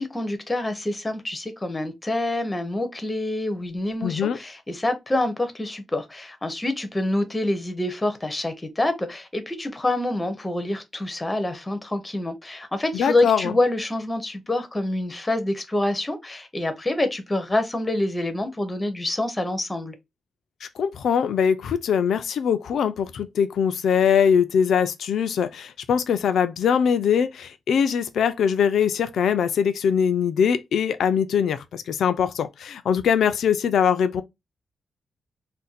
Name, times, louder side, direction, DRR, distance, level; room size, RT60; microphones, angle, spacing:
voice 1, 0.0-19.9, left 1 dB, 15° left, 0.6 m, -26 dB
voice 2, 4.0-4.4 12.9-13.5 20.6-34.2, left 7 dB, 80° left, 0.3 m, -22 dB
2.5 x 2.1 x 3.9 m
wide cardioid pair, 140°, 0 cm